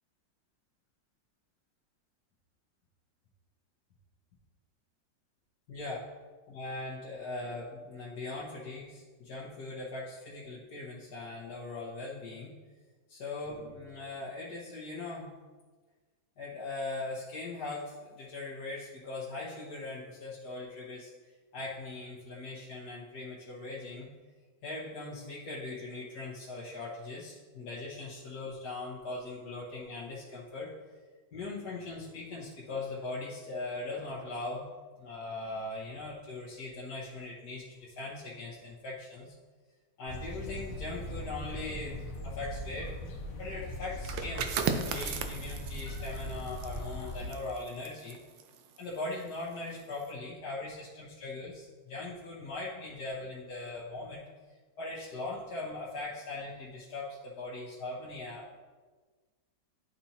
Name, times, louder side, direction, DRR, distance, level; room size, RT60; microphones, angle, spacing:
voice 1, 5.7-6.0 6.5-12.5 13.1-15.3 16.4-21.1 21.5-24.1 24.6-30.7 31.3-34.7 35.0-39.3 40.0-42.9 43.4-48.2 48.8-54.2 54.8-58.6, left 2 dB, 60° left, -7 dB, 1.5 m, -40 dB
sound 1, 40.1-47.3, left 1 dB, 85° left, 1.7 m, -40 dB
sound 2, 43.9-49.4 49.8-50.1, right 6 dB, 90° right, 1.4 m, -37 dB
11.5 x 4.2 x 2.9 m, 1.4 s
omnidirectional pair, 2.0 m